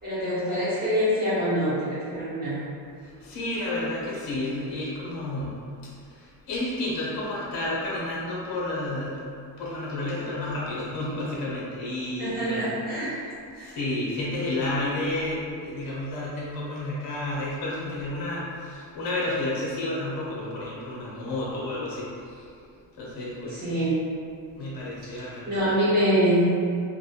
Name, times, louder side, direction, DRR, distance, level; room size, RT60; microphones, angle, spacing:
voice 1, 0.0-2.6 12.2-13.1 13.5-13.8 23.5-23.9 25.0-26.5, equal, 25° right, -12 dB, 1.0 m, -25 dB
voice 2, 3.0-5.6 6.1-9.2 9.6-12.8 13.6-22.5 23.0-23.6 24.5-25.8, left 1 dB, 60° left, -6 dB, 0.7 m, -31 dB
2.9 x 2.2 x 2.4 m, 2.4 s
cardioid pair, 175°, 41 cm